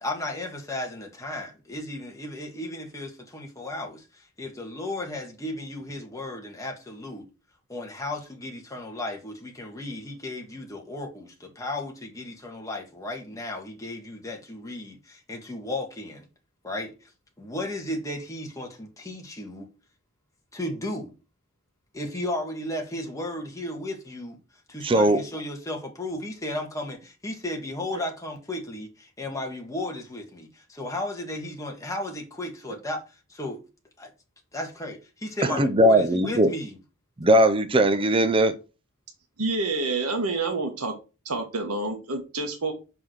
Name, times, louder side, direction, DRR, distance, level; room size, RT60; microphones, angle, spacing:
voice 1, 0.0-7.3 7.7-16.3 16.6-17.1 17.4-19.7 20.5-21.1 21.9-24.4 24.7-33.0 33.3-33.6 34.0-34.1 34.5-36.8, left 1 dB, 15° left, 1.7 m, -34 dB
voice 2, 24.8-25.2 35.4-36.5 37.2-38.6, right 1 dB, 25° right, 0.6 m, -19 dB
voice 3, 39.4-40.9 41.2-42.7, right 3 dB, 80° right, 1.6 m, -28 dB
5.6 x 4.9 x 6.2 m
head